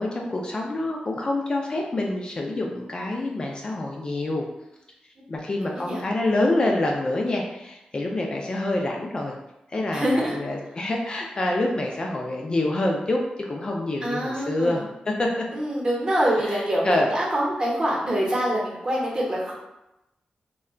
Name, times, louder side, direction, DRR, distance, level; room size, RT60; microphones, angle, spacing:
voice 1, 0.0-4.5 5.3-9.3 9.7-15.4 16.4-17.1, left 2 dB, 35° left, 0 dB, 0.3 m, -26 dB
voice 2, 5.7-6.1 9.9-10.4 14.0-14.8 15.5-19.5, equal, 30° right, -4 dB, 0.8 m, -25 dB
2.3 x 2.1 x 3.6 m, 0.91 s
wide cardioid pair, 125°, 3 cm